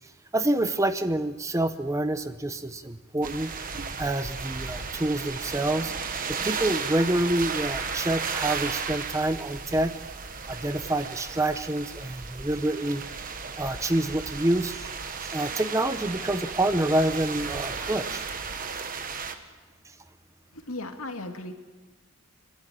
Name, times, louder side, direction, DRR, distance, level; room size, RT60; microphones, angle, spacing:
voice 1, 0.3-3.5 4.0-5.9 6.3-9.9 10.5-13.0 13.6-15.0 15.3-18.2, right 1 dB, 15° right, 11 dB, 0.7 m, -27 dB
sound 1, 3.2-19.3, right 5 dB, 40° right, 1.3 m, -34 dB
voice 2, 20.5-21.5, left 2 dB, 80° left, 5 dB, 2.2 m, -36 dB
30.0 x 12.5 x 9.1 m, 1.3 s
head